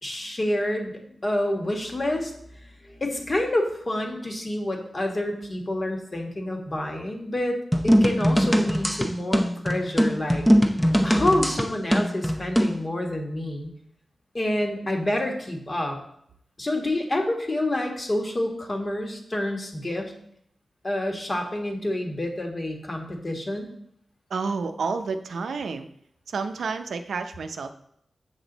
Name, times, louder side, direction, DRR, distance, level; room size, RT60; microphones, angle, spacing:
voice 1, 0.0-2.5 2.9-7.6 7.8-10.4 11.0-13.7 14.3-16.0 16.6-20.1 20.8-23.7, left 1 dB, 35° left, 2 dB, 1.5 m, -28 dB
sound 1, 7.7-12.8, equal, 5° left, 0.7 m, -21 dB
voice 2, 24.3-25.9 26.3-27.7, right 4 dB, 90° right, 7 dB, 0.5 m, -30 dB
7.5 x 6.1 x 4.0 m, 0.71 s
wide cardioid pair, 90°, 0 cm